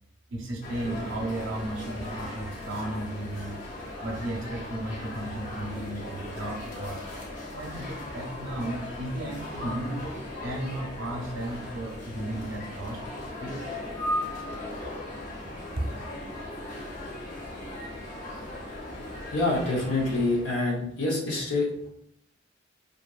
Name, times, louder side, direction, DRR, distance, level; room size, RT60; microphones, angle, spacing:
voice 1, 0.3-3.6 4.0-7.0 7.5-10.1 10.4-13.0 13.4-13.7 15.7-15.9, right 1 dB, 85° right, 1 dB, 0.6 m, -34 dB
sound 1, 0.6-20.5, left 1 dB, 40° left, 0.7 m, -38 dB
voice 2, 19.3-21.9, left 2 dB, 80° left, -2 dB, 0.9 m, -26 dB
2.6 x 2.6 x 2.3 m, 0.70 s
head